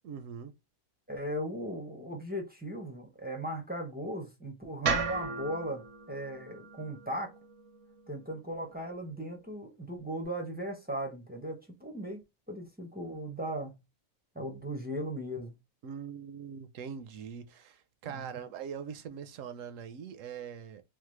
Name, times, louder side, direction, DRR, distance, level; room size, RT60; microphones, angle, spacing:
voice 1, 0.0-0.5 15.8-20.8, right 7 dB, 70° right, 0.9 m, -42 dB
voice 2, 1.1-7.3 8.1-13.8 14.3-15.5 18.0-18.4, right 1 dB, 10° right, 0.4 m, -38 dB
sound 1, 4.8-9.0, right 5 dB, 85° right, 1.3 m, -36 dB
3.3 x 2.0 x 3.0 m
omnidirectional pair, 1.4 m